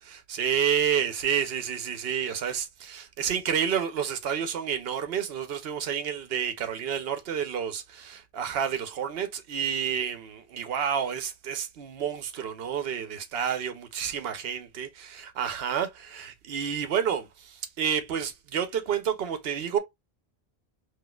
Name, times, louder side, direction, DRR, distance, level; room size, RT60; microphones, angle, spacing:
voice 1, 0.1-19.8, right 8 dB, 70° right, 0.9 m, -30 dB
4.0 x 2.5 x 2.3 m
omnidirectional pair, 1.1 m